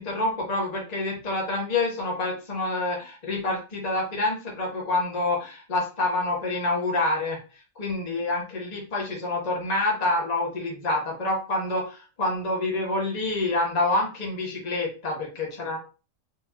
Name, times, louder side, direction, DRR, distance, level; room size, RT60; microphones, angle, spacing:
voice 1, 0.0-7.4 7.8-15.8, left 2 dB, 35° left, -2 dB, 1.2 m, -27 dB
4.3 x 3.1 x 2.9 m, 0.34 s
omnidirectional pair, 1.3 m